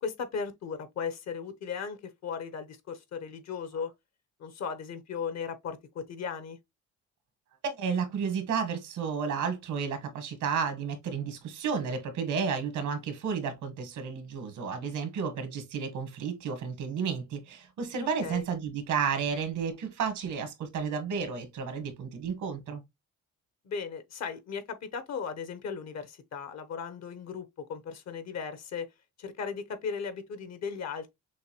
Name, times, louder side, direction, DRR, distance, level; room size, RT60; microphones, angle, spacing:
voice 1, 0.0-3.9 4.4-6.6 18.0-18.4 23.6-28.9 29.2-31.1, left 6 dB, 60° left, 0.9 m, -37 dB
voice 2, 7.6-22.8, right 6 dB, 80° right, 1.4 m, -32 dB
6.2 x 2.2 x 3.0 m
cardioid pair, 90°, 30 cm